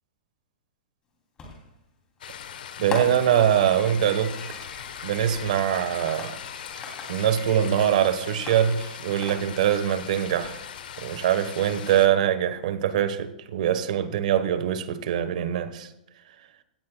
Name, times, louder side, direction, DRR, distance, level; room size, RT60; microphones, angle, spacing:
Fireworks, 1.4-1.8 2.9-8.0 8.5-9.8, left 2 dB, 15° left, 2.9 m, -39 dB
sound 1, 2.2-12.1, left 8 dB, 75° left, 1.1 m, -40 dB
voice 1, 2.8-4.4 5.0-6.4 7.1-10.6 11.0-15.9, right 10 dB, 55° right, 1.2 m, -23 dB
17.0 x 14.5 x 2.3 m
hypercardioid pair, 170°, 5 cm